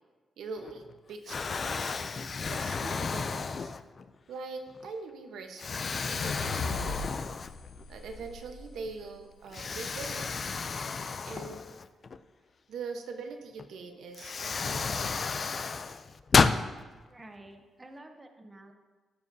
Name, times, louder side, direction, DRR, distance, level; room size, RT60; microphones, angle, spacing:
voice 1, 0.4-1.9 2.4-3.7 4.3-7.0 7.9-10.3 11.2-11.8 12.7-15.1, right 4 dB, 85° right, 5 dB, 1.0 m, -42 dB
Explosion, 0.6-0.9 1.3-4.1 4.7-4.9 5.6-7.8 8.2-8.3 9.5-12.2 13.6-13.7 14.1-16.6, left 5 dB, 35° left, 0.3 m, -31 dB
sound 1, 6.2-9.5, left 4 dB, 70° left, 0.9 m, -39 dB
voice 2, 17.1-18.7, right 1 dB, 15° right, 4 dB, 0.7 m, -50 dB
14.5 x 7.5 x 2.7 m, 1.3 s
wide cardioid pair, 165°, 0 cm